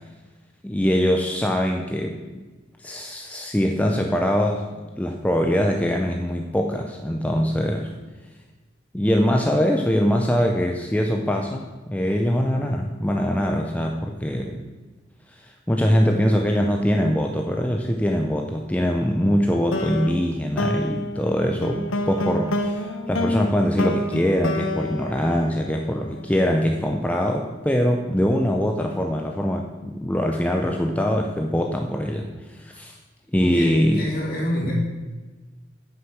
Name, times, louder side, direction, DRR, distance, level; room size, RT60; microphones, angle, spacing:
voice 1, 0.6-2.4 2.8-4.7 5.0-7.9 8.9-14.6 15.3-33.0 33.3-34.1 34.6-34.7, equal, 5° left, 2 dB, 0.5 m, -23 dB
sound 1, 19.7-26.1, left 1 dB, 70° left, 0.9 m, -28 dB
voice 2, 33.4-34.7, equal, 45° left, -4 dB, 3.7 m, -28 dB
9.4 x 6.8 x 6.6 m, 1.3 s
head